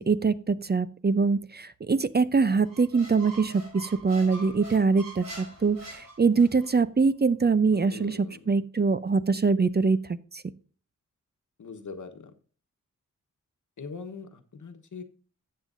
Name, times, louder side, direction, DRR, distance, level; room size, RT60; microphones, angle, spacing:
voice 1, 0.0-10.0 10.3-10.4, right 4 dB, 30° right, 14 dB, 0.6 m, -24 dB
Squeak, 2.6-6.7, right 1 dB, 85° right, 5.8 m, -44 dB
voice 2, 7.7-8.5 11.6-12.3 13.8-15.0, left 5 dB, 65° left, 7 dB, 1.2 m, -42 dB
13.5 x 7.5 x 2.6 m, 0.40 s
cardioid pair, 60°, 32 cm